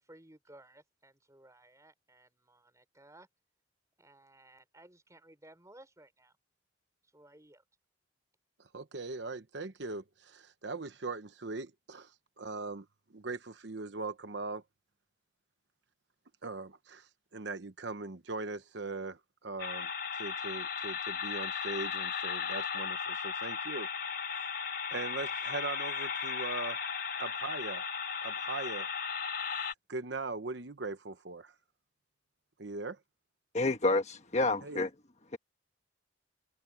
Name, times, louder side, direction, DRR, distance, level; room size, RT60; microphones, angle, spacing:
voice 1, 0.0-3.3 4.0-6.3 7.1-7.6, right 1 dB, 15° right, 5.4 m, -58 dB
voice 2, 8.7-12.9 13.1-14.6 16.4-23.9 24.9-26.9 27.2-27.9 28.2-28.9 29.9-31.5 32.6-33.0 34.6-34.9, right 3 dB, 65° right, 1.0 m, -40 dB
sound 1, 19.6-29.7, left 6 dB, 55° left, 3.3 m, -36 dB
voice 3, 33.5-34.9, left 2 dB, 40° left, 1.4 m, -29 dB
head